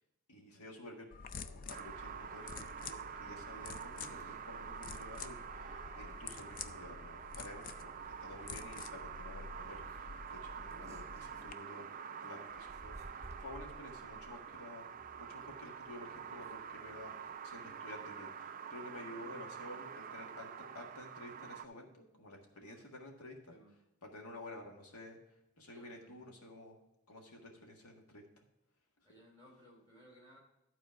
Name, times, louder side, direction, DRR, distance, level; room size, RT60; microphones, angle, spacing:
voice 1, 0.3-11.9 12.2-14.9 15.2-23.5 24.0-25.2 25.6-26.8 27.1-28.4, left 1 dB, 85° left, 1 dB, 1.7 m, -51 dB
sound 1, 1.1-11.5, left 5 dB, 40° left, 0.3 m, -49 dB
sound 2, 1.7-21.6, right 7 dB, 35° right, 0.3 m, -47 dB
sound 3, 4.0-4.8 5.2-5.3 5.6-5.7 6.9-7.2 7.5-7.7 8.2-8.3 8.6-8.7 9.1-9.3 9.8-12.0 12.5-17.8, right 1 dB, 10° right, 0.8 m, -57 dB
voice 2, 22.5-22.9 23.5-23.7 25.7-26.3 29.0-30.4, equal, 15° left, -3 dB, 3.1 m, -61 dB
11.5 x 4.3 x 5.7 m, 0.90 s
head